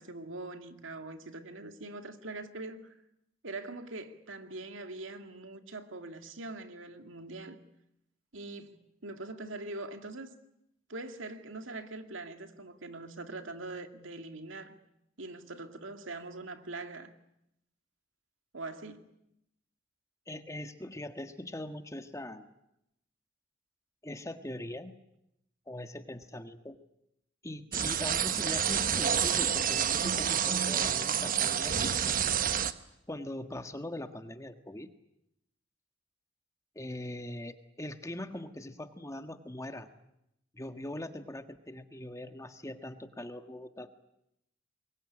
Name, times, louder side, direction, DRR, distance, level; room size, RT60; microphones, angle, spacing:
voice 1, 0.0-2.9 3.4-7.6 8.3-10.3 10.9-14.7 15.2-17.1 18.5-19.1, right 2 dB, 90° right, 2.3 m, -43 dB
voice 2, 20.3-22.5 24.0-24.9 25.7-26.8 27.4-32.2 33.1-34.9 36.7-39.9 40.5-43.9, left 1 dB, 15° left, 1.5 m, -41 dB
sound 1, 27.7-32.7, right 8 dB, 45° right, 1.1 m, -28 dB
24.0 x 22.0 x 9.9 m
head